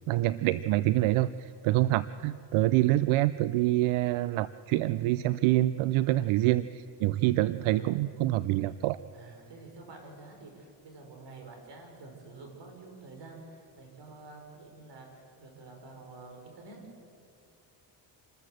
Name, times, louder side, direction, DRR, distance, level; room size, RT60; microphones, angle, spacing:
voice 1, 0.1-9.0, right 16 dB, 90° right, 16 dB, 0.6 m, -26 dB
voice 2, 6.0-6.4 7.6-8.0 9.1-16.8, right 3 dB, 60° right, 2 dB, 5.5 m, -49 dB
27.0 x 13.5 x 7.7 m, 2.5 s
cardioid pair, 85°, 47 cm